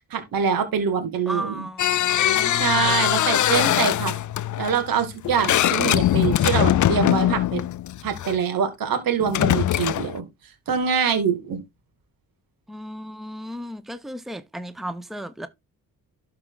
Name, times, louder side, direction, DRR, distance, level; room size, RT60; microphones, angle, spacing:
voice 1, 0.1-1.6 2.5-4.1 4.6-7.6 8.0-10.2 10.7-11.6, right 7 dB, 85° right, 2.5 m, -24 dB
voice 2, 1.3-3.0 12.7-15.5, right 1 dB, ahead, 0.9 m, -35 dB
sound 1, 1.8-8.4 9.2-10.2, left 12 dB, 60° left, 0.5 m, -22 dB
12.0 x 4.7 x 4.0 m
cardioid pair, 80°, 34 cm